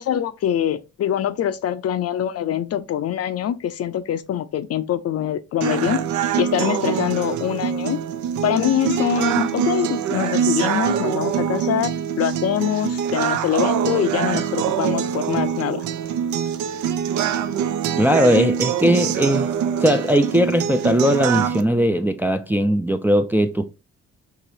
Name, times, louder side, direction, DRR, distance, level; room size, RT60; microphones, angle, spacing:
voice 1, 0.0-8.0 8.4-11.9 12.2-15.8, left 10 dB, 55° left, 0.5 m, -24 dB
sound 1, 5.6-21.6, right 8 dB, 75° right, 0.5 m, -24 dB
voice 2, 18.0-19.5 19.8-23.6, equal, 5° right, 0.3 m, -19 dB
4.8 x 2.9 x 2.7 m
cardioid pair, 90°, 30 cm